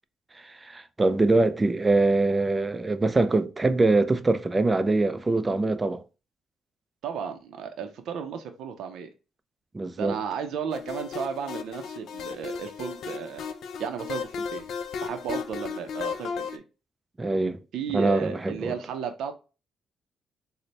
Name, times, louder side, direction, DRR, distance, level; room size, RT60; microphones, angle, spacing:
voice 1, 0.4-6.0 9.7-10.2 17.2-17.6 17.9-18.7, right 2 dB, 20° right, 0.4 m, -23 dB
voice 2, 7.0-9.1 10.0-13.4 13.8-14.7 15.0-16.6 17.7-19.3, right 7 dB, 80° right, 0.5 m, -34 dB
sound 1, 10.7-16.6, left 6 dB, 70° left, 0.4 m, -35 dB
3.9 x 2.1 x 3.2 m
cardioid pair, 90°, 0 cm